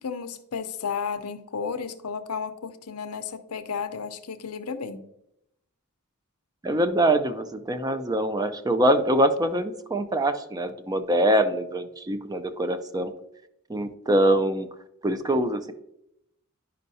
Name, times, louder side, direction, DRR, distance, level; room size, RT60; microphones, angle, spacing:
voice 1, 0.0-5.1, left 6 dB, 85° left, 9 dB, 0.7 m, -33 dB
voice 2, 6.6-13.1 13.7-14.7 15.0-15.7, right 1 dB, 15° right, 9 dB, 0.4 m, -24 dB
11.0 x 5.4 x 2.7 m, 0.81 s
head